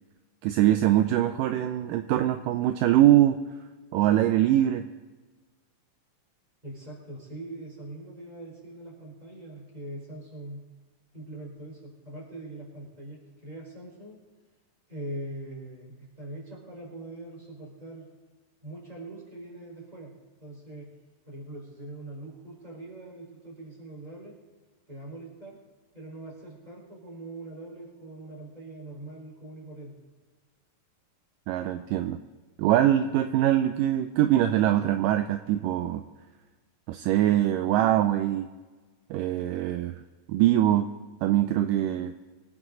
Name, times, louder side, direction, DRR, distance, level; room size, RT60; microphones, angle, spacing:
voice 1, 0.4-3.4 3.9-4.9 31.5-32.2 32.6-36.0 36.9-38.5 39.1-40.0 40.3-40.9 41.2-42.1, right 12 dB, 80° right, 9 dB, 2.1 m, -23 dB
voice 2, 6.6-10.6 11.1-14.2 14.9-18.1 18.6-20.1 20.4-20.9 21.3-24.3 24.9-25.6 25.9-29.9, right 1 dB, 10° right, -3 dB, 4.5 m, -42 dB
23.5 x 9.7 x 4.0 m, 1.3 s
omnidirectional pair, 4.2 m